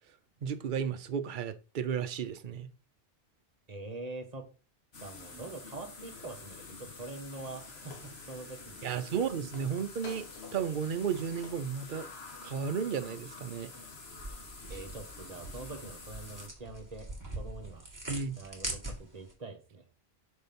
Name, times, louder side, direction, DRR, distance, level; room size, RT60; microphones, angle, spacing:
voice 1, 0.4-2.7 8.8-10.3 10.5-12.1 12.4-13.7 18.1-18.4, right 7 dB, 55° right, 0.8 m, -33 dB
voice 2, 3.7-4.5 5.0-9.2 14.7-17.8 18.3-19.8, right 3 dB, 40° right, 1.4 m, -44 dB
sound 1, 4.9-16.5, left 3 dB, 75° left, 1.7 m, -47 dB
sound 2, 14.1-19.3, right 1 dB, 15° right, 2.1 m, -42 dB
6.5 x 4.4 x 5.3 m
omnidirectional pair, 1.1 m